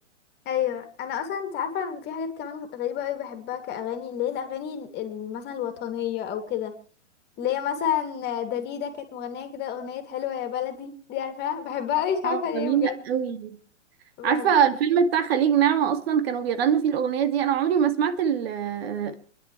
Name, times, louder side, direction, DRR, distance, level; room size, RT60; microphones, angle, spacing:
voice 1, 0.5-6.7 7.4-13.1 14.2-14.5, left 9 dB, 25° left, 2.7 m, -30 dB
voice 2, 12.2-13.6 14.2-19.1, right 8 dB, 50° right, 2.3 m, -23 dB
28.0 x 11.0 x 3.3 m
hypercardioid pair, 130°, 38 cm